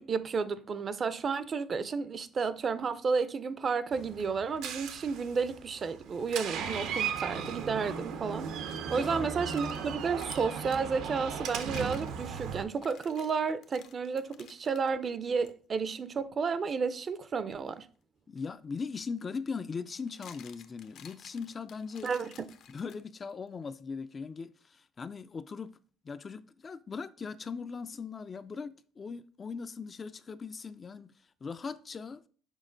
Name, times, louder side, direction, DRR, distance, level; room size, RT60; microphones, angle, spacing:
voice 1, 0.0-17.9 22.0-22.3, right 5 dB, 35° right, 0.5 m, -32 dB
Door, 3.9-12.6, right 7 dB, 75° right, 0.8 m, -37 dB
voice 2, 8.7-9.3 18.3-22.1 22.7-25.7 26.0-31.1 31.4-32.2, left 5 dB, 30° left, 0.3 m, -39 dB
sound 1, 9.2-10.9 11.4-14.9 15.4-15.5 16.2-16.4 18.5-18.6 19.8-23.3, left 9 dB, 65° left, 0.7 m, -54 dB
6.3 x 4.8 x 3.9 m
cardioid pair, 115°, 0 cm